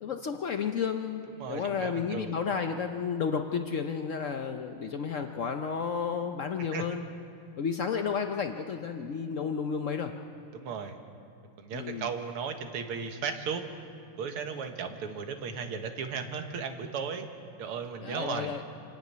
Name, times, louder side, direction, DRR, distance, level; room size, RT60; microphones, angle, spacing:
voice 1, 0.0-1.2 1.5-7.0 7.6-10.1 11.7-12.1 18.0-18.6, left 6 dB, 90° left, 6 dB, 0.6 m, -32 dB
voice 2, 1.4-2.3 6.7-6.9 10.5-11.0 11.6-13.6 14.2-17.3 17.6-18.5, right 6 dB, 90° right, 6 dB, 2.3 m, -35 dB
26.5 x 12.0 x 9.4 m, 2.5 s
omnidirectional pair, 2.4 m